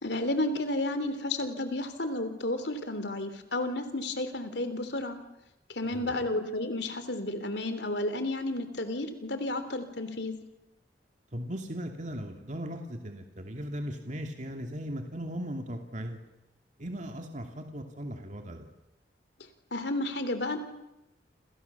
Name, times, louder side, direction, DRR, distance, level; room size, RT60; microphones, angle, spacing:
voice 1, 0.0-5.2 5.7-10.3 19.7-20.6, left 2 dB, 70° left, 10 dB, 3.6 m, -32 dB
voice 2, 5.9-6.3 11.3-16.2 16.8-18.7, equal, 45° right, 4 dB, 2.6 m, -38 dB
29.0 x 28.5 x 7.1 m, 0.93 s
head